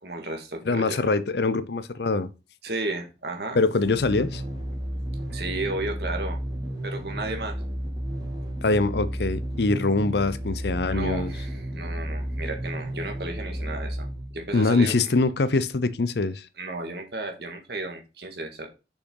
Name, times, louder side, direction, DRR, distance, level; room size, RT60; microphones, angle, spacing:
voice 1, 0.0-1.0 2.6-3.6 5.3-6.4 6.8-7.6 10.9-14.1 14.3-14.9 16.6-18.7, right 2 dB, 65° right, 1.9 m, -33 dB
voice 2, 0.6-2.3 3.5-4.4 8.6-11.3 14.5-16.5, left 3 dB, 70° left, 0.7 m, -23 dB
sound 1, 3.8-14.6, equal, 25° right, 2.2 m, -32 dB
6.3 x 6.1 x 3.9 m
head